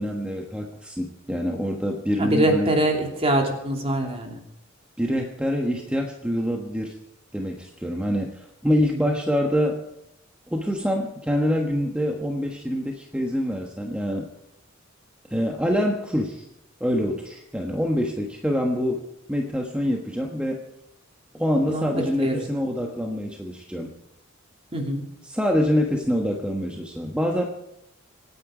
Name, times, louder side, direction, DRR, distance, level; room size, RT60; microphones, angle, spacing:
voice 1, 0.0-2.7 5.0-7.0 7.3-9.8 10.5-14.3 15.3-16.4 16.8-20.6 21.3-23.9 25.2-27.5, equal, 5° right, 1 dB, 1.2 m, -25 dB
voice 2, 2.2-4.4 21.7-21.9 22.2-22.4 24.7-25.0, right 1 dB, 30° right, 2 dB, 2.9 m, -23 dB
25.5 x 9.7 x 5.0 m, 0.85 s
head